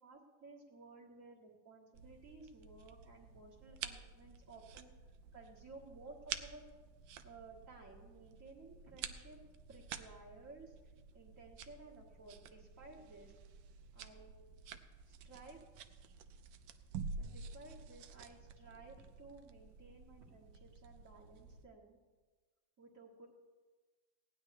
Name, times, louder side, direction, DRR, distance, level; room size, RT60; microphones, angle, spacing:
voice 1, 0.0-4.9 5.3-6.6 7.2-9.4 9.7-10.8 11.1-13.3 13.9-14.3 15.0-15.7 17.2-22.0 22.8-23.3, right 3 dB, 45° right, -4 dB, 1.9 m, -56 dB
sound 1, 1.9-21.7, right 6 dB, 85° right, 1.4 m, -50 dB
17.0 x 10.5 x 3.3 m, 1.3 s
omnidirectional pair, 2.0 m